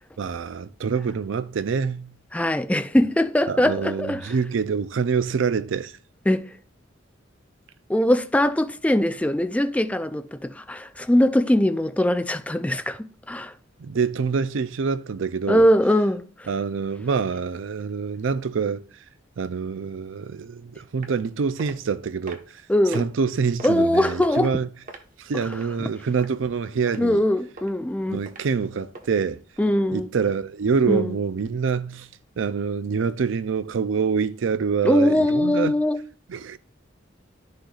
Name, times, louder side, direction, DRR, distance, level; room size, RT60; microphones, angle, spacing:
voice 1, 0.2-2.1 3.5-5.9 13.8-15.7 16.5-18.8 19.4-22.4 22.9-24.7 25.2-27.2 28.1-29.4 29.9-32.1 32.4-35.7 36.3-36.6, right 5 dB, 75° right, 0.5 m, -26 dB
voice 2, 2.3-4.3 6.3-6.5 7.9-13.5 15.5-16.5 22.7-23.1 23.6-24.6 25.3-25.5 25.8-25.9 27.0-28.2 29.6-30.1 30.9-31.2 34.8-36.0, left 1 dB, 5° left, 0.4 m, -21 dB
sound 1, 21.0-21.3 21.6-21.8 22.3-22.6 22.9-23.0 23.6-23.9 24.2-24.5 24.9-25.7 26.2-26.5 26.9-27.0 27.6-27.7 28.3-28.4 28.9-29.1 29.6-29.7, right 2 dB, 45° right, 1.2 m, -39 dB
11.5 x 6.4 x 2.4 m
head